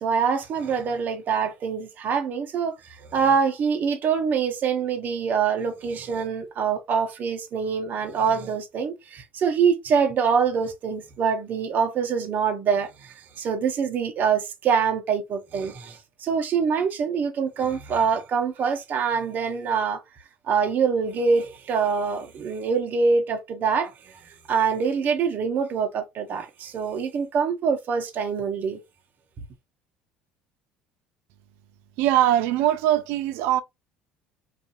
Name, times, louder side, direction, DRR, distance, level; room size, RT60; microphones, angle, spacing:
voice 1, 0.0-20.0 20.5-28.8, right 6 dB, 50° right, 0.7 m, -25 dB
voice 2, 32.0-33.6, right 12 dB, 70° right, 0.4 m, -21 dB
2.6 x 2.4 x 2.5 m
hypercardioid pair, 75°, 4 cm